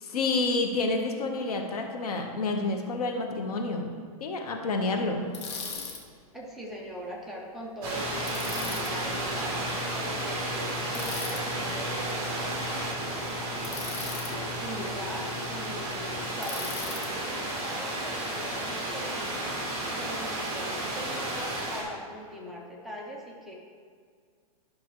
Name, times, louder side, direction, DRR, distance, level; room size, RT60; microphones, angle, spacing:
voice 1, 0.0-3.9 4.2-5.3, left 3 dB, 80° left, 3 dB, 1.3 m, -29 dB
Bicycle, 5.3-6.0 8.3-8.9 10.9-11.4 13.6-14.3 16.4-17.1, left 5 dB, 45° left, 1.1 m, -38 dB
voice 2, 6.3-12.5 13.1-23.5, equal, ahead, -4 dB, 0.6 m, -41 dB
sound 1, 7.8-21.8, right 1 dB, 20° right, 2.0 m, -32 dB
12.0 x 6.0 x 3.1 m, 2.1 s
supercardioid pair, 165°, 19 cm